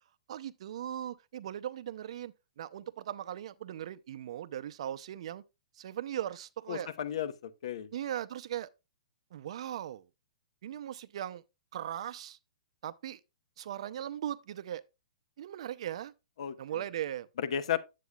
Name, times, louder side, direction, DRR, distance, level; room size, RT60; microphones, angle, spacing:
voice 1, 0.3-5.4 5.8-6.9 7.9-8.7 9.3-10.0 10.6-11.4 11.7-12.4 12.8-13.2 13.6-14.8 15.4-16.1 16.6-17.3, right 11 dB, 55° right, 0.6 m, -38 dB
voice 2, 6.7-7.9 16.4-16.8 17.4-17.8, left 9 dB, 60° left, 1.0 m, -34 dB
9.6 x 8.3 x 2.3 m
hypercardioid pair, 165°, 4 cm